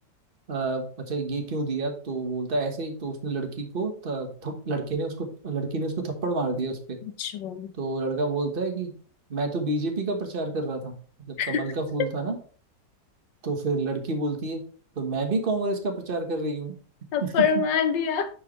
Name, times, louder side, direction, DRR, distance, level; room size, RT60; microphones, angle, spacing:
voice 1, 0.5-7.0 7.8-8.9 9.3-10.9 11.2-12.4 13.4-14.6 15.0-16.7 17.2-17.3, right 3 dB, 35° right, 5 dB, 1.4 m, -29 dB
voice 2, 7.0-7.7 11.4-11.6 17.1-18.3, left 7 dB, 85° left, 9 dB, 1.6 m, -25 dB
10.5 x 4.7 x 3.2 m, 0.43 s
omnidirectional pair, 1.9 m